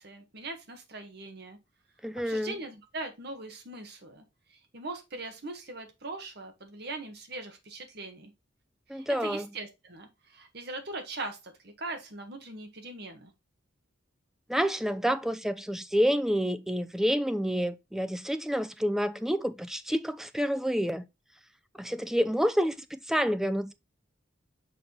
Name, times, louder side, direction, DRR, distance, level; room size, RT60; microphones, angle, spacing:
voice 1, 0.0-1.6 2.2-8.3 8.9-13.3, right 2 dB, 60° right, 1.5 m, -41 dB
voice 2, 2.0-2.5 8.9-9.5 14.5-21.0 21.8-23.7, equal, ahead, 0.4 m, -28 dB
6.1 x 3.7 x 4.4 m
head